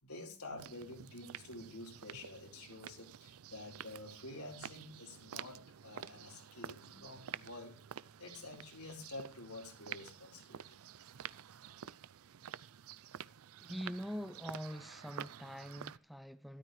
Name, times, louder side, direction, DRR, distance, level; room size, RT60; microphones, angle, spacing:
voice 1, 0.0-7.7 8.2-10.8, left 2 dB, 80° left, 4.3 m, -49 dB
sound 1, 0.6-16.0, right 9 dB, 70° right, 0.5 m, -50 dB
voice 2, 13.6-16.6, equal, ahead, 0.5 m, -44 dB
13.0 x 12.5 x 3.2 m
head